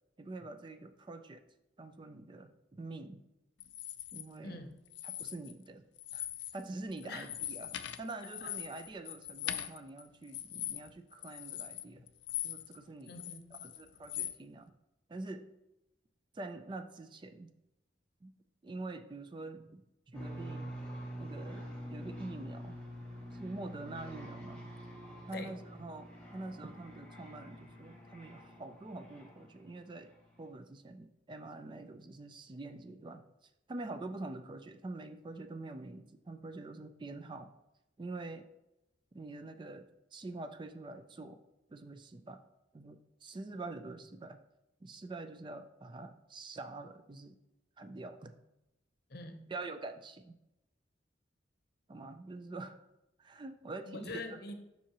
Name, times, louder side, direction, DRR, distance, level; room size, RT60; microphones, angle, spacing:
voice 1, 0.2-1.5 1.8-3.2 4.1-4.7 5.0-5.9 6.1-6.3 6.5-12.1 12.4-13.2 13.5-14.7 15.1-15.5 16.3-17.5 18.2-18.3 18.6-20.8 21.2-22.8 23.3-24.6 25.3-30.1 30.4-37.5 38.0-38.5 39.1-41.4 41.7-42.4 42.7-44.4 44.8-47.4 47.8-48.3 49.5-50.4 51.9-52.8 53.2-54.1, right 2 dB, 25° right, 9 dB, 0.4 m, -45 dB
sound 1, 3.6-4.2 4.9-5.7 6.0-6.6 6.9-12.8 13.1-14.4, left 12 dB, 80° left, 0.4 m, -41 dB
voice 2, 4.4-4.7 7.0-7.3 8.4-8.5 13.1-13.6 25.3-25.5 49.1-49.5 53.8-54.5, left 2 dB, 55° left, 7 dB, 0.8 m, -44 dB
sound 2, 20.1-29.7, equal, 10° left, 2.0 m, -46 dB
7.4 x 5.5 x 2.9 m, 0.90 s
head